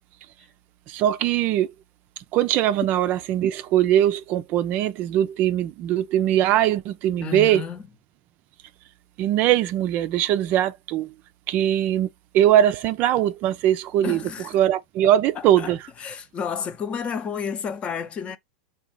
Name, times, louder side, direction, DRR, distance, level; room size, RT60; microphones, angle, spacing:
voice 1, 0.9-1.7 2.3-7.6 9.2-11.1 11.5-14.2 14.5-15.8, right 12 dB, 45° right, 0.4 m, -21 dB
voice 2, 7.2-7.8 14.0-14.5 15.3-18.4, left 6 dB, 30° left, 0.6 m, -31 dB
3.8 x 2.3 x 4.5 m
hypercardioid pair, 100°, 4 cm